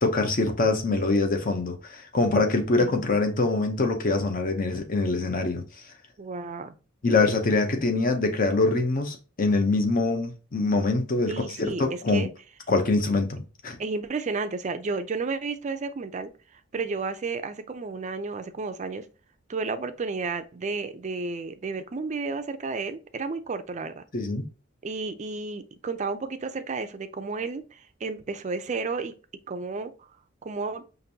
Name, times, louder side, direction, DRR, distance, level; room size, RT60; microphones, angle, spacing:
voice 1, 0.0-5.6 7.0-11.3 11.8-12.3 12.7-13.8 24.1-24.4, left 3 dB, 45° left, 0.7 m, -24 dB
voice 2, 6.2-6.8 11.3-12.3 13.8-16.3 16.7-19.1 19.5-24.0 24.8-29.1 29.5-29.9 30.4-30.9, right 4 dB, 35° right, 0.4 m, -32 dB
5.1 x 2.6 x 2.7 m
head